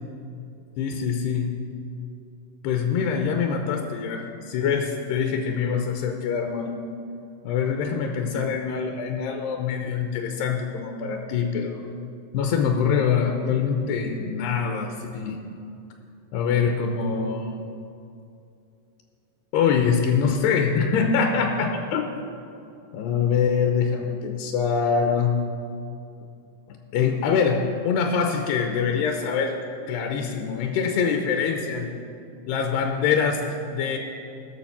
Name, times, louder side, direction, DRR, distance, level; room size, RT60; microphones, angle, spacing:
voice 1, 0.8-1.5 2.6-6.7 7.4-11.8 12.3-15.4 16.3-17.6 19.5-22.1 22.9-25.4 26.7-29.6 29.9-31.9 32.5-34.0, left 6 dB, 80° left, 3 dB, 2.7 m, -24 dB
18.0 x 6.7 x 5.7 m, 2.6 s
omnidirectional pair, 5.0 m